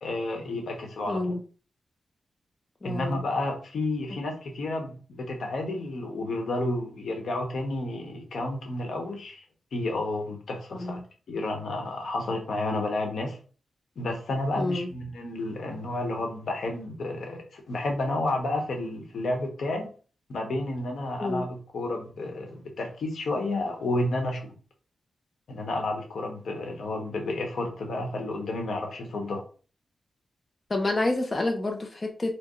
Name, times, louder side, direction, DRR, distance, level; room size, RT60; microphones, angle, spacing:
voice 1, 0.0-1.2 2.8-9.4 9.7-11.0 11.3-13.4 14.0-19.9 20.3-24.5 25.5-29.4, left 2 dB, 75° left, 2 dB, 1.1 m, -31 dB
voice 2, 1.1-1.4 2.8-3.2 10.7-11.0 14.6-14.9 21.2-21.5 30.7-32.3, left 2 dB, 30° left, 2 dB, 0.5 m, -28 dB
4.4 x 2.1 x 3.1 m, 0.38 s
wide cardioid pair, 115°, 0 cm